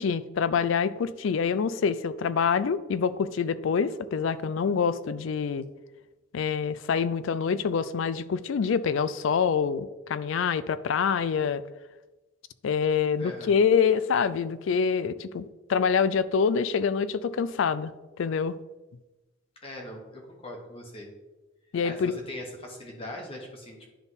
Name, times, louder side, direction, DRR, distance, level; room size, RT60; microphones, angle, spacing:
voice 1, 0.0-5.6 6.3-11.6 12.6-17.9 18.2-18.6 21.7-22.2, left 6 dB, 70° left, 15 dB, 0.3 m, -26 dB
voice 2, 13.2-13.5 19.6-21.1 21.8-23.9, left 1 dB, 25° left, 0 dB, 1.4 m, -41 dB
10.0 x 3.5 x 4.0 m, 1.1 s
head